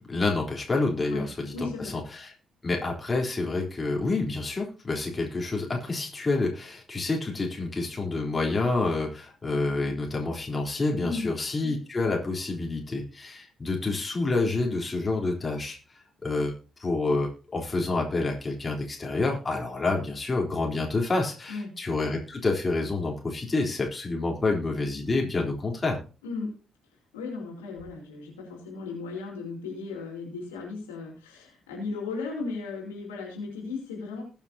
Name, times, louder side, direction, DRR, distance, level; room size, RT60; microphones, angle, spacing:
voice 1, 0.1-2.3 2.6-15.8 16.2-16.5 16.8-26.0, left 3 dB, 30° left, 0 dB, 3.7 m, -28 dB
voice 2, 1.5-1.9 11.0-11.3 21.5-21.7 26.2-26.5 27.1-34.2, left 4 dB, 80° left, -2 dB, 4.1 m, -35 dB
20.5 x 7.3 x 2.8 m, 0.34 s
figure-of-eight pair, 40°, 0 cm